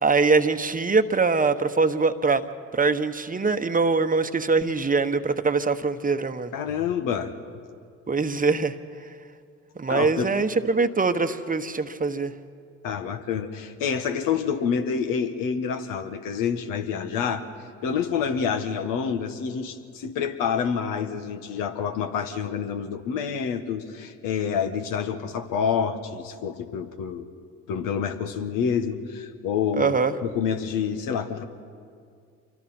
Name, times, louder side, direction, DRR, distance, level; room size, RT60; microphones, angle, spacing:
voice 1, 0.0-2.4 2.7-6.5 8.1-8.7 9.8-12.3 29.7-30.1, right 4 dB, 25° right, 8 dB, 1.1 m, -23 dB
voice 2, 6.5-7.3 9.9-10.3 12.8-17.5 17.8-27.2 27.7-31.4, left 7 dB, 70° left, 8 dB, 1.6 m, -28 dB
27.5 x 24.0 x 4.4 m, 2.3 s
supercardioid pair, 70°, 34 cm